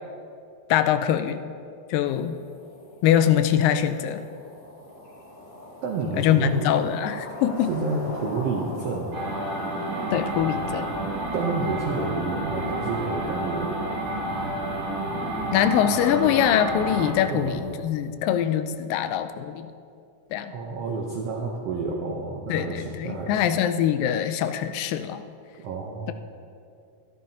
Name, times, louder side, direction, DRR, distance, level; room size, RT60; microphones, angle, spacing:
voice 1, 0.7-1.4 1.9-2.4 3.0-4.2 6.2-7.7 10.1-10.9 15.5-19.7 20.3-20.5 22.5-25.2, left 10 dB, 85° left, 10 dB, 2.2 m, -23 dB
sound 1, 2.0-18.1, left 1 dB, 40° left, 1.5 m, -44 dB
voice 2, 5.8-6.7 7.7-9.1 11.3-13.7 17.3-17.6 20.5-23.4 25.6-26.1, right 3 dB, 90° right, 0 dB, 1.3 m, -29 dB
sound 2, 9.1-17.1, right 1 dB, 50° right, 2.6 m, -30 dB
sound 3, 10.2-17.7, left 1 dB, 60° left, 3.1 m, -42 dB
13.0 x 12.0 x 2.8 m, 2.4 s
omnidirectional pair, 3.9 m